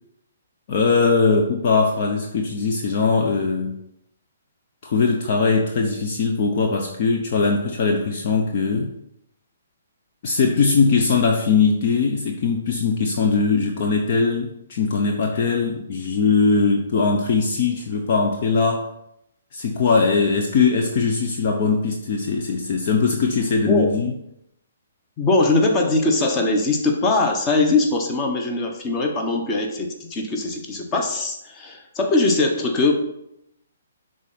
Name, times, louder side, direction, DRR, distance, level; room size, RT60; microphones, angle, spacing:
voice 1, 0.7-3.8 4.8-8.9 10.2-18.9 19.5-24.1, left 4 dB, 45° left, 2 dB, 0.8 m, -20 dB
voice 2, 25.2-32.9, left 2 dB, 20° left, 3 dB, 1.1 m, -21 dB
11.0 x 3.9 x 4.2 m, 0.79 s
figure-of-eight pair, 125°, 0 cm